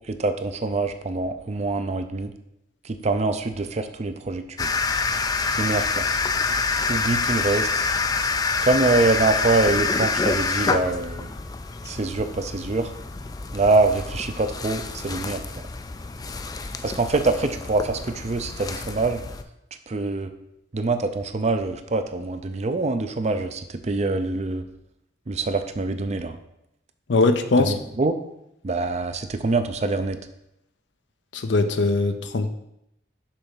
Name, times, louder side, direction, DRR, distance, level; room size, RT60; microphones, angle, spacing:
voice 1, 0.1-2.3 3.0-4.7 5.5-6.1 6.9-7.7 8.6-11.3 11.8-12.9 13.5-15.4 16.8-19.2 19.9-20.3 20.7-24.6 25.3-26.4 27.6-28.2 28.6-30.2, right 3 dB, 40° right, 9 dB, 0.5 m, -24 dB
sound 1, 4.6-19.4, left 4 dB, 20° left, 0.3 m, -27 dB
voice 2, 27.1-27.7 31.3-32.5, left 3 dB, 75° left, 9 dB, 0.6 m, -21 dB
6.7 x 3.4 x 5.6 m, 0.80 s
head